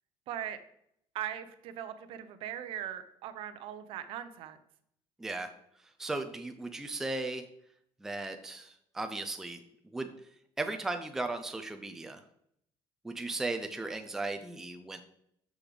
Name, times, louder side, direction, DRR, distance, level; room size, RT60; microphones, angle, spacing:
voice 1, 0.3-0.6 1.1-4.6, right 10 dB, 60° right, 11 dB, 0.7 m, -39 dB
voice 2, 6.0-7.4 8.0-9.6 9.9-10.1 10.6-12.2 13.0-15.0, right 2 dB, 5° right, 6 dB, 0.4 m, -36 dB
6.6 x 6.2 x 3.9 m, 0.72 s
cardioid pair, 175°, 10 cm